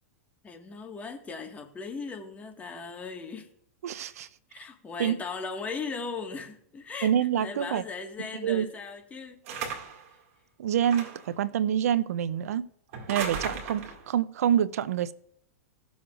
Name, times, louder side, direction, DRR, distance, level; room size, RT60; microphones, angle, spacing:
voice 1, 0.4-3.5 4.1-7.1 7.4-9.4, left 4 dB, 20° left, 1.6 m, -38 dB
voice 2, 3.8-4.3 5.0-5.2 7.0-7.8 8.4-8.7 10.6-12.6 13.1-15.1, right 9 dB, 80° right, 0.5 m, -26 dB
sound 1, 9.5-10.1 10.8-11.3 12.9-14.1, right 6 dB, 60° right, 2.1 m, -35 dB
18.5 x 7.1 x 2.5 m
hypercardioid pair, 130°, 8 cm